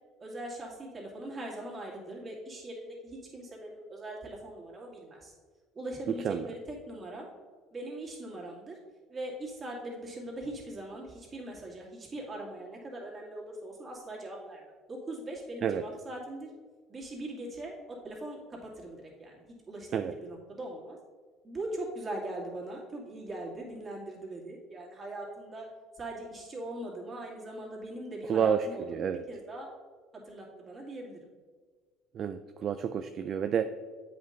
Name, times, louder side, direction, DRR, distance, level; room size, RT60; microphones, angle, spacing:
voice 1, 0.2-5.3 5.7-7.3 7.7-8.8 9.1-14.6 14.9-16.5 16.9-21.0 21.4-25.7 26.0-29.7 30.2-31.2, right 1 dB, 30° right, -2 dB, 2.4 m, -41 dB
voice 2, 28.3-29.2 32.1-33.7, right 7 dB, 50° right, 9 dB, 0.3 m, -29 dB
8.1 x 5.2 x 3.9 m, 1.5 s
supercardioid pair, 90°, 0 cm